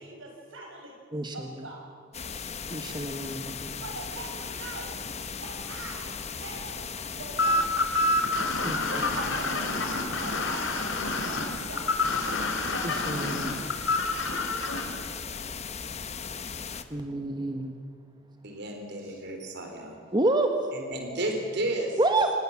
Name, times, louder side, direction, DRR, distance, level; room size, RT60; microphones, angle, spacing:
voice 1, 0.0-1.0 1.3-1.9 3.8-5.0 5.3-6.1 6.4-7.7 8.4-9.9 10.1-12.0 13.0-13.7 14.1-15.4 19.0-19.2, right 2 dB, 75° right, 1 dB, 6.8 m, -43 dB
voice 2, 1.1-1.5 2.7-3.8 8.6-9.1 12.8-13.5 16.9-17.8 20.1-20.5 22.0-22.3, right 2 dB, 20° right, 5 dB, 1.4 m, -28 dB
sound 1, 2.1-16.8, left 6 dB, 35° left, 1.1 m, -37 dB
sound 2, 7.4-14.8, left 2 dB, 65° left, 3.5 m, -28 dB
voice 3, 18.4-20.0 20.7-22.0, right 1 dB, 60° right, 3 dB, 4.0 m, -32 dB
27.0 x 19.5 x 7.4 m, 2.1 s
head